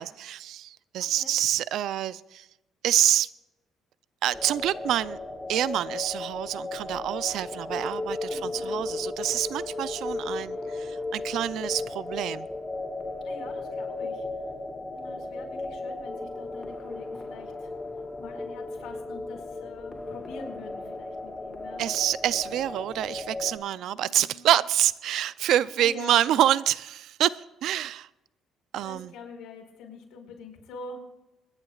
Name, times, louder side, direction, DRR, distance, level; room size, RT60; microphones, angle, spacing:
voice 1, 0.0-2.4 2.8-3.3 4.2-5.2 5.5-12.5 21.8-28.1 28.7-29.1, right 12 dB, 75° right, 0.4 m, -27 dB
sound 1, 4.3-23.6, left 2 dB, 15° left, 1.8 m, -35 dB
voice 2, 8.2-8.8 13.2-14.5 14.9-17.7 18.2-21.8 23.9-24.5 25.7-26.4 28.8-31.0, left 3 dB, 80° left, 4.5 m, -45 dB
25.5 x 11.0 x 2.4 m
cardioid pair, 105°, 0 cm